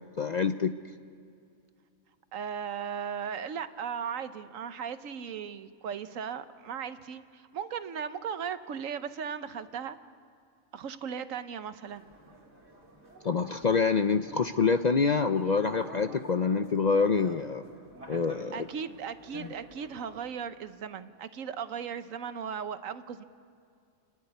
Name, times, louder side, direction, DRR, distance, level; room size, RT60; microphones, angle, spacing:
voice 1, 0.2-0.7 13.2-17.6 18.1-18.7, left 5 dB, 50° left, 9 dB, 0.5 m, -26 dB
voice 2, 2.3-10.0 10.7-12.0 18.5-23.2, right 7 dB, 85° right, 11 dB, 1.3 m, -37 dB
sound 1, 11.9-20.2, right 2 dB, 55° right, 3.0 m, -50 dB
30.0 x 11.0 x 9.8 m, 2.4 s
omnidirectional pair, 1.3 m